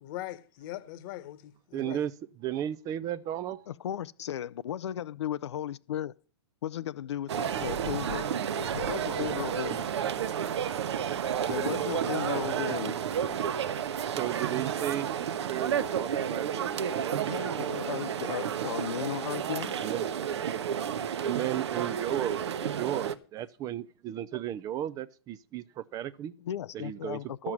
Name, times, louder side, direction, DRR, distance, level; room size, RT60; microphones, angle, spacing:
voice 1, 0.0-2.0, left 14 dB, 45° left, 1.1 m, -41 dB
voice 2, 1.7-2.1 2.4-3.6 14.2-17.3 19.7-20.1 21.2-26.3 26.7-27.5, right 11 dB, 25° right, 0.4 m, -35 dB
voice 3, 3.7-6.1 6.6-8.3 8.6-9.8 11.5-13.0 17.3-19.8 26.4-27.5, left 10 dB, 75° left, 0.5 m, -35 dB
sound 1, 7.3-23.1, right 8 dB, 70° right, 1.0 m, -31 dB
12.0 x 7.3 x 6.2 m
hypercardioid pair, 130°, 15 cm